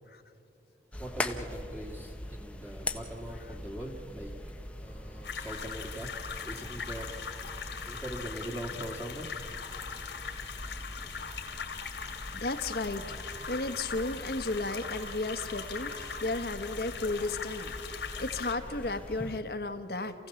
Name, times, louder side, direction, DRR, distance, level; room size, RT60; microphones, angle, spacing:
sound 1, 0.9-19.4, left 1 dB, 5° left, 0.9 m, -43 dB
voice 1, 1.0-4.3 4.8-6.1 6.4-7.2 7.9-9.3, right 1 dB, 10° right, -1 dB, 2.0 m, -41 dB
sound 2, 5.2-18.5, left 6 dB, 90° left, 2.3 m, -41 dB
voice 2, 12.3-20.1, left 2 dB, 65° left, 8 dB, 1.3 m, -34 dB
sound 3, 12.4-16.8, right 2 dB, 30° right, 5.1 m, -53 dB
28.0 x 16.0 x 7.1 m, 2.7 s
head